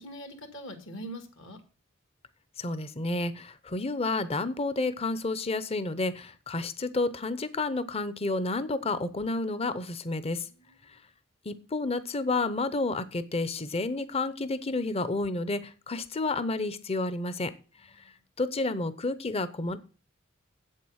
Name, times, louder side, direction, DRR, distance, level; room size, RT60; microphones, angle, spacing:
voice 1, 0.0-1.6 10.5-10.9 18.0-18.1, equal, 70° left, 6 dB, 2.1 m, -43 dB
voice 2, 2.6-10.5 11.4-17.5 18.4-19.8, left 2 dB, 30° left, 14 dB, 0.7 m, -30 dB
8.1 x 7.5 x 6.3 m, 0.36 s
head